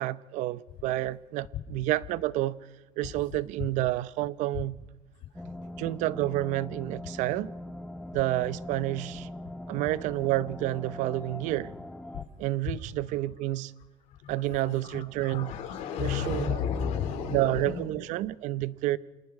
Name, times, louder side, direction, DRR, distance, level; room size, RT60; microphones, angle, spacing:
voice 1, 0.0-2.6 3.0-4.8 5.8-7.5 8.1-9.3 9.7-11.7 12.4-13.7 14.3-15.5 16.0-16.6 17.3-19.0, right 16 dB, 80° right, 0.7 m, -29 dB
sound 1, 5.3-12.2, left 1 dB, 5° left, 1.0 m, -41 dB
voice 2, 14.7-17.8, left 7 dB, 75° left, 2.8 m, -32 dB
29.0 x 27.0 x 4.8 m
cardioid pair, 155°, 12 cm